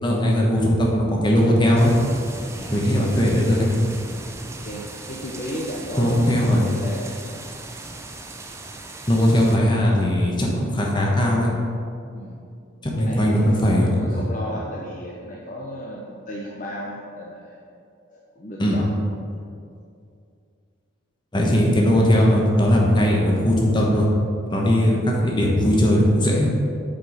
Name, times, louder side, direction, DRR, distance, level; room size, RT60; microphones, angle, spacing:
voice 1, 0.0-1.9 2.7-3.7 6.0-6.6 9.1-11.5 12.8-14.2 18.6-18.8 21.3-24.1 24.5-26.5, equal, 20° left, -2 dB, 1.1 m, -19 dB
sound 1, 1.7-9.6, right 2 dB, 15° right, 0.4 m, -37 dB
voice 2, 4.6-7.1 12.1-12.4 13.0-17.6 18.1-18.9 19.3-19.5 24.7-25.0, equal, 40° left, -3 dB, 0.6 m, -34 dB
7.5 x 4.6 x 4.9 m, 2.4 s
head